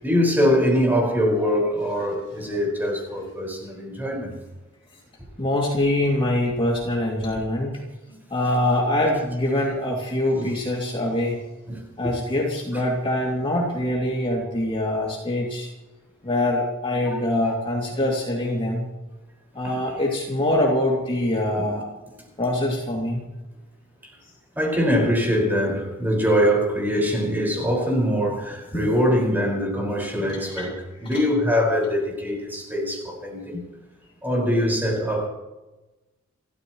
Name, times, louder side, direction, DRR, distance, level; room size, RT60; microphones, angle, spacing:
voice 1, 0.0-4.3 8.1-8.2 10.4-10.5 11.7-11.8 17.1-17.2 17.4-17.5 19.6-19.8 21.5-21.7 24.6-30.7 31.0-33.6 34.2-35.3, equal, 10° right, 5.4 m, -23 dB
voice 2, 5.4-7.8 8.3-11.4 12.0-15.7 16.2-18.8 19.5-21.9 22.4-23.3 28.7-28.9 30.2-30.7 31.1-31.2, left 1 dB, 25° left, 2.7 m, -24 dB
29.5 x 14.0 x 3.2 m
head